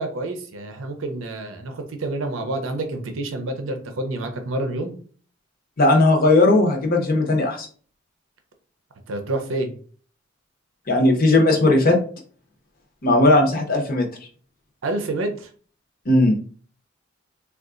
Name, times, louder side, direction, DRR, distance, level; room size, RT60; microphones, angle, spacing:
voice 1, 0.0-4.9 9.1-9.7 14.8-15.5, right 2 dB, 75° right, 6 dB, 0.5 m, -28 dB
voice 2, 5.8-7.7 10.9-12.0 13.0-14.1 16.1-16.3, left 2 dB, 45° left, 2 dB, 0.8 m, -17 dB
3.7 x 2.3 x 2.4 m, 0.44 s
head